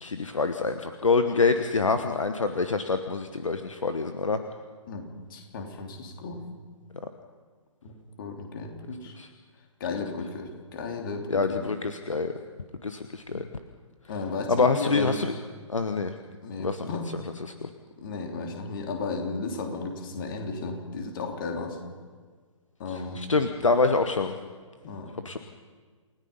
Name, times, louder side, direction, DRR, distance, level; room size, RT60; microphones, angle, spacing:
voice 1, 0.0-4.4 9.2-9.3 11.3-12.3 12.8-13.5 14.5-15.3 15.7-16.2 16.6-16.9 17.4-17.7 22.9-24.3 25.2-25.4, left 4 dB, 70° left, 8 dB, 1.3 m, -26 dB
voice 2, 5.3-6.4 7.8-9.1 9.8-11.6 14.1-15.2 16.4-17.1 18.0-21.8 22.8-23.2 24.8-25.1, left 4 dB, 40° left, 2 dB, 3.5 m, -34 dB
29.0 x 17.5 x 5.5 m, 1.5 s
figure-of-eight pair, 130°, 17 cm